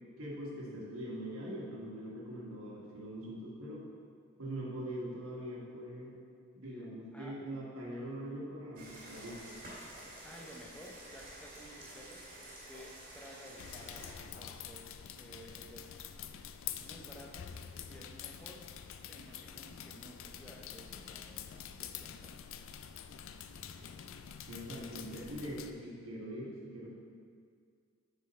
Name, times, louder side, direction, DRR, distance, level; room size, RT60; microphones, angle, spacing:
voice 1, 0.2-3.8 4.4-6.2 6.5-9.4 24.4-26.9, right 1 dB, 70° right, -4 dB, 1.4 m, -42 dB
voice 2, 6.6-7.4 10.2-16.0 16.7-17.6 17.8-18.6 19.0-22.4, equal, 5° left, -1 dB, 0.6 m, -54 dB
sound 1, 8.8-14.1, right 1 dB, 40° right, 1.8 m, -50 dB
sound 2, 13.6-25.7, left 8 dB, 65° left, 0.3 m, -46 dB
6.8 x 4.8 x 4.2 m, 2.1 s
head